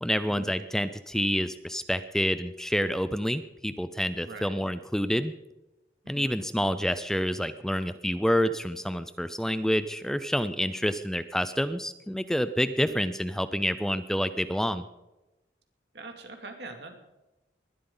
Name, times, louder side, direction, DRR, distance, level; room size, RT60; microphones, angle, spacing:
voice 1, 0.0-5.3 6.1-14.8, equal, 5° left, 12 dB, 0.5 m, -28 dB
voice 2, 4.2-4.6 6.0-6.3 12.8-13.0 15.9-17.0, right 2 dB, 70° right, 4 dB, 2.6 m, -43 dB
21.0 x 12.5 x 4.0 m, 1.0 s
head